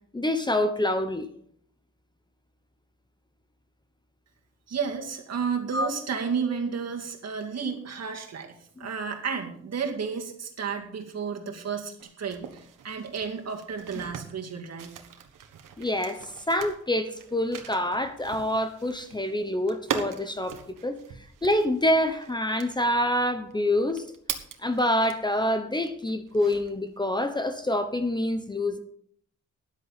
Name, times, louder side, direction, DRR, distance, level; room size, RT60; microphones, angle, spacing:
voice 1, 0.1-1.3 5.7-5.9 8.8-8.9 15.8-21.0 21.4-24.0 24.6-28.8, left 1 dB, 15° left, 8 dB, 0.8 m, -26 dB
voice 2, 4.7-15.0, right 6 dB, 55° right, 3 dB, 2.2 m, -32 dB
sound 1, 12.0-25.4 25.8-26.9, right 8 dB, 85° right, 1.4 m, -40 dB
13.0 x 10.5 x 4.1 m, 0.64 s
wide cardioid pair, 125°, 31 cm